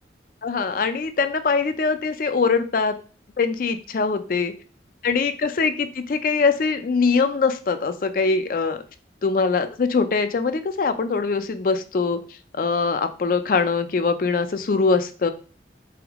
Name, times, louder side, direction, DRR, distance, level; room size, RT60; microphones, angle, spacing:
voice 1, 0.4-3.0 3.4-4.5 5.0-8.8 9.2-12.2 12.5-15.3, left 4 dB, 50° left, 9 dB, 0.4 m, -22 dB
3.8 x 3.5 x 3.5 m, 0.38 s
head